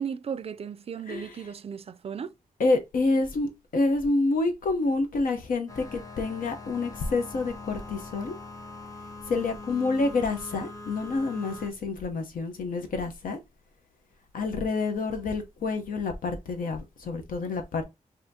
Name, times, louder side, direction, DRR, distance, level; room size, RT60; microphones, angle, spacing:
voice 1, 0.0-2.3, right 7 dB, 45° right, 0.4 m, -35 dB
voice 2, 1.1-1.4 2.6-8.4 9.3-13.4 14.3-17.8, left 3 dB, 85° left, 0.9 m, -28 dB
sound 1, 5.7-11.7, left 2 dB, 25° left, 0.7 m, -42 dB
5.6 x 2.8 x 2.8 m
wide cardioid pair, 130°, 14 cm